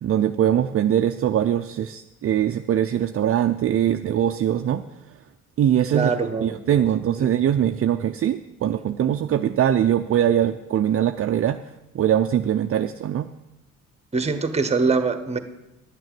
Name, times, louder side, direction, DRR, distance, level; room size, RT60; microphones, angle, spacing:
voice 1, 0.0-4.8 5.6-6.1 6.4-11.6 11.9-13.3, right 10 dB, 50° right, 7 dB, 0.5 m, -22 dB
voice 2, 5.9-6.6 7.2-7.3 14.1-15.4, right 4 dB, 20° right, 10 dB, 1.1 m, -23 dB
11.0 x 7.9 x 7.6 m, 0.94 s
cardioid pair, 90°, 30 cm